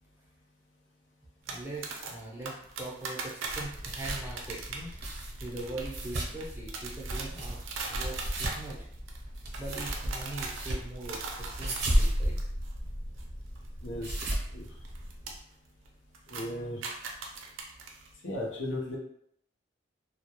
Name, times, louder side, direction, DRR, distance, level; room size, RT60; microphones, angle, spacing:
voice 1, 1.5-4.9 5.4-7.6 7.9-8.9 9.6-12.4, right 2 dB, 10° right, -4 dB, 0.5 m, -41 dB
sound 1, 1.5-12.7 13.0-13.2 13.5-15.3 15.6-15.9 16.1-18.1, right 4 dB, 90° right, 0.4 m, -40 dB
sound 2, 3.5-15.4, equal, 55° right, 0.7 m, -34 dB
voice 2, 13.8-14.2 14.5-14.7 16.3-16.8 18.2-19.0, left 1 dB, 70° left, -1 dB, 0.6 m, -36 dB
2.2 x 2.1 x 2.9 m, 0.70 s
head